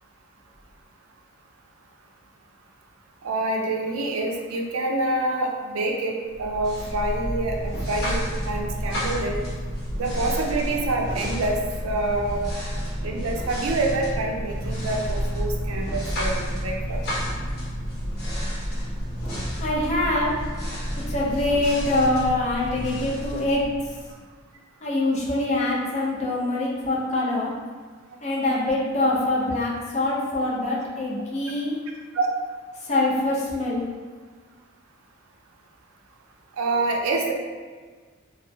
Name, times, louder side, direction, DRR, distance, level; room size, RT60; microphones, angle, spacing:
voice 1, 3.2-9.4 10.0-11.5 11.8-12.5 13.0-17.0 32.1-32.3 36.6-37.3, right 2 dB, 70° right, 1 dB, 0.4 m, -26 dB
sound 1, 6.3-24.2, equal, 50° left, 1.0 m, -30 dB
voice 2, 19.6-20.3 21.1-23.9 24.8-27.5 28.2-31.8 32.8-33.9, left 2 dB, 35° left, -5 dB, 0.6 m, -24 dB
3.2 x 2.1 x 2.7 m, 1.5 s
head